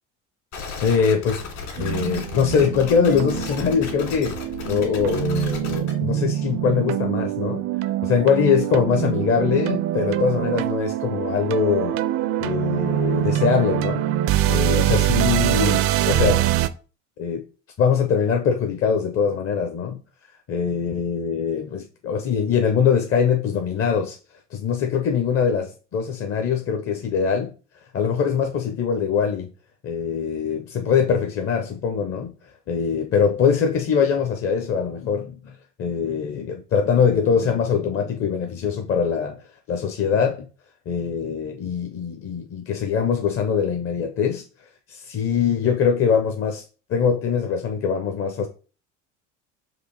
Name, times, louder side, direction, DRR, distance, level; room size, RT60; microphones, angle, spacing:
sound 1, 0.5-5.9, left 5 dB, 55° left, 1.9 m, -34 dB
voice 1, 0.8-1.4 1.8-4.4 4.7-7.6 8.0-12.0 12.4-14.0 14.5-16.4 17.2-17.4 17.8-20.0 20.5-24.2 24.5-27.5 27.9-29.5 29.8-32.3 32.7-39.4 39.7-40.5 40.9-44.4 44.9-46.6 46.9-48.5, left 6 dB, 40° left, 0.7 m, -22 dB
sound 2, 1.8-16.7, right 12 dB, 40° right, 0.4 m, -24 dB
4.7 x 2.5 x 4.0 m
hypercardioid pair, 70°, 36 cm